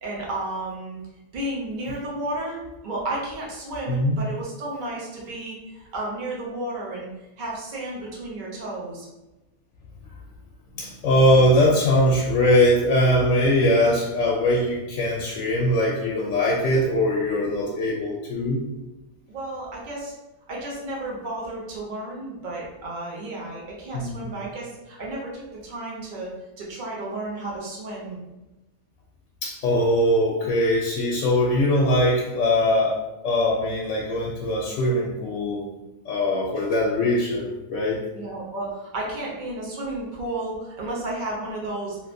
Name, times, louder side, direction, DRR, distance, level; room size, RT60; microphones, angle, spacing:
voice 1, 0.0-1.0 1.3-5.6 5.9-7.1 7.4-9.1 19.3-20.1 20.5-26.3 26.6-28.2 38.1-42.0, right 2 dB, 45° right, -4 dB, 0.7 m, -32 dB
voice 2, 10.8-18.6 23.9-24.3 29.4-32.9 33.2-35.7 36.1-38.0, left 1 dB, 70° left, -2 dB, 0.8 m, -21 dB
3.1 x 2.8 x 2.6 m, 1.0 s
omnidirectional pair, 1.6 m